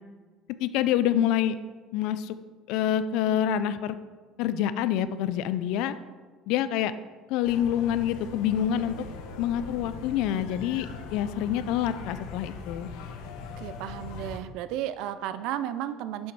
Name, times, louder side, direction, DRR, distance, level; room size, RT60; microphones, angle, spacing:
voice 1, 0.6-1.6 1.9-2.4 2.7-4.0 4.4-6.0 6.5-6.9 7.3-9.0 9.4-10.9 11.1-12.9, left 10 dB, 65° left, 13 dB, 0.4 m, -26 dB
sound 1, 7.4-14.4, left 5 dB, 85° left, 0.9 m, -41 dB
voice 2, 13.6-16.3, right 11 dB, 65° right, 13 dB, 0.4 m, -33 dB
6.9 x 6.4 x 4.6 m, 1.4 s
cardioid pair, 175°, 0 cm